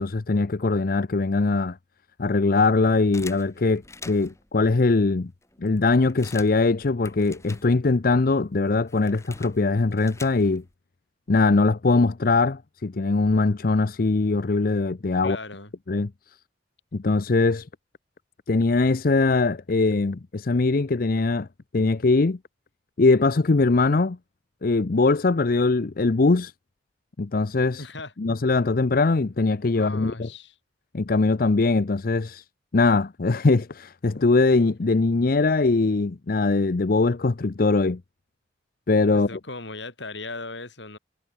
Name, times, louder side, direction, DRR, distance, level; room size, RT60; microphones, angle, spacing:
voice 1, 0.0-1.8 2.2-5.3 5.6-10.6 11.3-15.4 15.9-16.1 16.9-17.7 18.5-21.5 21.7-22.4 23.0-24.2 24.6-26.5 27.2-27.8 28.2-30.3 30.9-32.4 32.7-38.0 38.9-39.4, left 3 dB, 50° left, 0.6 m, -21 dB
sound 1, 3.1-4.5 5.1-5.2 5.4-8.1 8.4-10.7, left 3 dB, 15° left, 3.6 m, -45 dB
voice 2, 15.2-15.7 27.8-28.1 29.8-30.5 39.1-41.0, left 3 dB, 80° left, 7.8 m, -37 dB
head